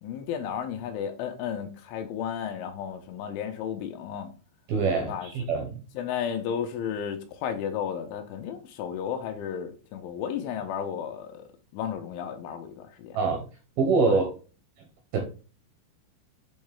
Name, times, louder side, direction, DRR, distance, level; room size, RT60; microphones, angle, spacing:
voice 1, 0.0-4.3 5.0-5.3 5.9-11.5 11.7-13.2 14.1-14.2, left 8 dB, 80° left, 3.2 m, -33 dB
voice 2, 4.7-5.8 13.1-13.4 13.8-14.2 15.1-15.2, right 4 dB, 75° right, 2.3 m, -24 dB
9.0 x 3.2 x 3.5 m
omnidirectional pair, 5.6 m